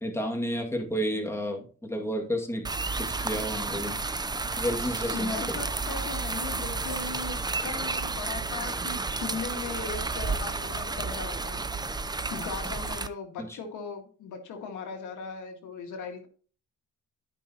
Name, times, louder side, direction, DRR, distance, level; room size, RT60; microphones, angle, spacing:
voice 1, 0.0-2.7 3.0-4.0 4.6-5.6, equal, 10° left, 1 dB, 2.2 m, -31 dB
sound 1, 2.6-13.1, right 3 dB, 15° right, 0.6 m, -32 dB
voice 2, 4.8-11.6 12.3-16.3, left 5 dB, 80° left, 4 dB, 1.9 m, -38 dB
13.5 x 5.6 x 2.9 m, 0.40 s
cardioid pair, 90°, 30 cm